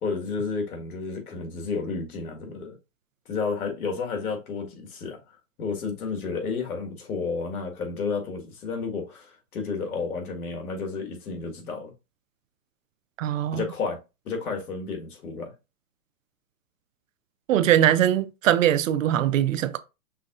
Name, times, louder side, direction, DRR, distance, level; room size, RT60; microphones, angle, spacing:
voice 1, 0.0-2.8 3.3-5.2 5.6-11.9 13.5-14.0 14.3-15.5, left 4 dB, 75° left, 1.8 m, -31 dB
voice 2, 13.2-13.7 17.5-19.8, right 11 dB, 60° right, 0.6 m, -21 dB
5.7 x 3.5 x 2.5 m
hypercardioid pair, 140°, 45 cm